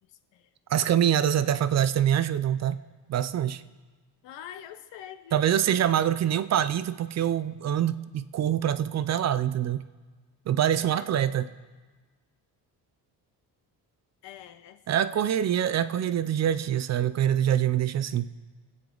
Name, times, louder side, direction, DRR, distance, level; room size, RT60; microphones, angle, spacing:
voice 1, 0.0-0.5 1.4-1.5 4.2-5.5 10.8-11.4 14.2-14.8 15.1-15.3, left 10 dB, 85° left, 10 dB, 1.0 m, -46 dB
voice 2, 0.7-2.8 3.1-3.6 5.3-9.8 10.5-11.5 14.9-18.3, right 10 dB, 40° right, 14 dB, 0.4 m, -25 dB
25.5 x 8.8 x 3.8 m, 1.3 s
cardioid pair, 155°, 42 cm